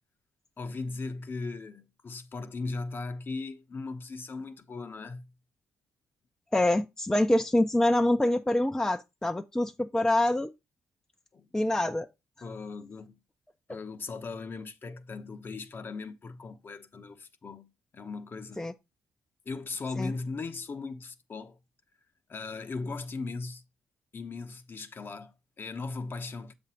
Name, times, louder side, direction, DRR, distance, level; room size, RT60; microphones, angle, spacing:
voice 1, 0.6-5.3 11.3-11.5 12.4-13.2 13.7-18.7 19.5-21.6 22.3-23.6 24.1-26.5, left 3 dB, 40° left, 0.8 m, -38 dB
voice 2, 6.5-10.5 11.5-12.1 18.6-18.7 20.0-20.1, left 1 dB, 10° left, 0.5 m, -25 dB
7.3 x 2.6 x 5.7 m
supercardioid pair, 70°, 6 cm